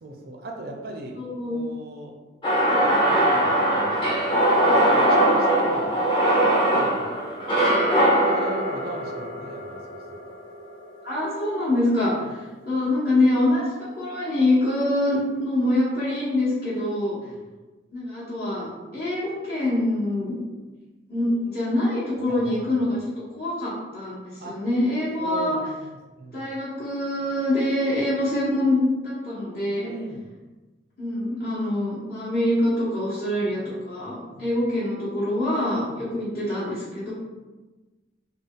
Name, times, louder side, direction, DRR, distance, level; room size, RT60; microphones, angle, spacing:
voice 1, 0.0-1.1 1.5-2.1 2.8-4.2 4.8-5.9 6.4-7.1 8.3-9.8 22.3-22.6 24.4-24.6 25.2-25.9 26.2-26.4 29.7-30.3 34.3-34.5, right 2 dB, 55° right, 1 dB, 0.4 m, -39 dB
voice 2, 1.1-1.6 11.0-12.4 12.7-17.2 17.9-18.7 18.9-20.4 21.1-23.0 23.4-25.6 26.3-29.9 31.0-37.1, left 1 dB, 50° left, -10 dB, 1.1 m, -25 dB
sound 1, 2.4-10.6, right 1 dB, 25° left, 0.7 m, -21 dB
3.4 x 2.3 x 3.6 m, 1.2 s
head